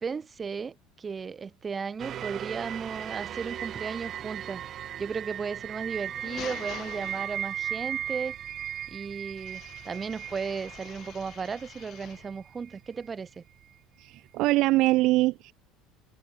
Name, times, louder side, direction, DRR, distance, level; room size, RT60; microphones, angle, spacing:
voice 1, 0.0-4.6 5.0-8.3 8.9-13.4, right 5 dB, 20° right, 2.5 m, -35 dB
sound 1, 2.0-13.1 13.6-13.7, right 10 dB, 35° right, 1.0 m, -37 dB
sound 2, 5.9-7.8 9.4-12.4, left 13 dB, 45° left, 4.3 m, -46 dB
voice 2, 14.0-15.5, right 19 dB, 55° right, 0.6 m, -23 dB
open air
cardioid pair, 155°, 0 cm